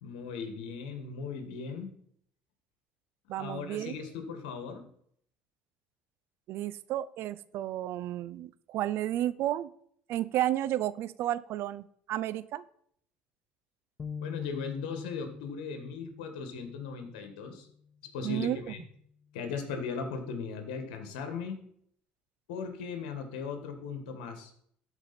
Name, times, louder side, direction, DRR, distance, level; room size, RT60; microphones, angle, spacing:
voice 1, 0.0-2.0 3.3-4.8 14.2-17.7 18.1-18.8 19.3-21.6 22.5-24.5, left 5 dB, 80° left, 7 dB, 1.6 m, -38 dB
voice 2, 3.3-4.0 6.5-9.7 10.1-12.6 18.2-18.6, right 13 dB, 60° right, 16 dB, 0.5 m, -32 dB
sound 1, 14.0-17.5, left 6 dB, 30° left, 0.5 m, -44 dB
12.5 x 4.9 x 4.3 m, 0.66 s
hypercardioid pair, 75°, 4 cm